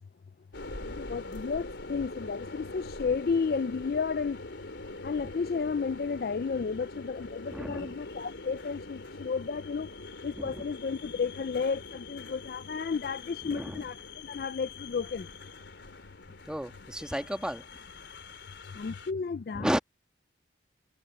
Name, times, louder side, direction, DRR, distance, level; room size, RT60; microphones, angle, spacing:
sound 1, 0.5-19.1, left 3 dB, 75° left, 3.4 m, -44 dB
voice 1, 0.9-4.4 5.0-9.9 10.2-15.3 18.7-19.8, left 5 dB, 50° left, 0.3 m, -32 dB
voice 2, 7.5-8.0 10.4-10.6 13.5-13.8 16.5-17.6 19.5-19.8, equal, 5° right, 1.4 m, -33 dB
head